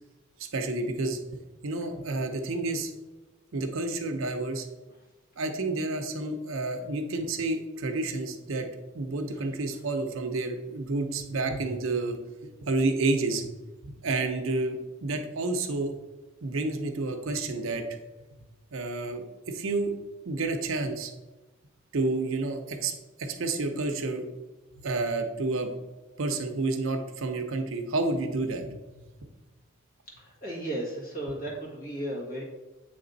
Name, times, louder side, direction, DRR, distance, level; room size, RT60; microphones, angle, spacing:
voice 1, 0.4-1.2 1.6-2.9 3.5-4.7 5.4-8.7 8.9-13.5 13.8-15.9 16.4-17.9 18.7-19.9 20.2-21.1 21.9-24.3 24.8-25.7 26.2-28.8, right 2 dB, 75° right, 6 dB, 0.7 m, -30 dB
voice 2, 30.2-32.4, right 1 dB, 45° left, -3 dB, 1.7 m, -35 dB
7.8 x 3.3 x 4.0 m, 1.1 s
head